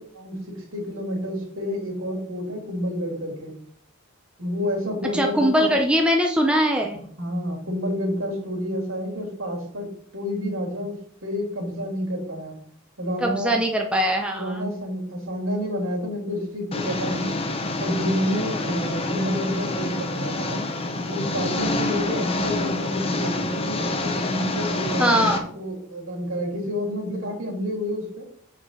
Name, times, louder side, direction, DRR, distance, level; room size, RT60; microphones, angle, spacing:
voice 1, 0.1-3.5 4.4-5.7 7.2-12.6 13.0-13.5 14.3-17.4 17.8-20.6 21.1-28.3, equal, 70° right, -1 dB, 3.1 m, -29 dB
voice 2, 5.1-7.0 13.2-14.6 25.0-25.4, equal, 5° right, 2 dB, 0.7 m, -21 dB
Engine, 16.7-25.4, left 2 dB, 25° left, 0.9 m, -27 dB
7.7 x 5.0 x 5.7 m, 0.62 s
head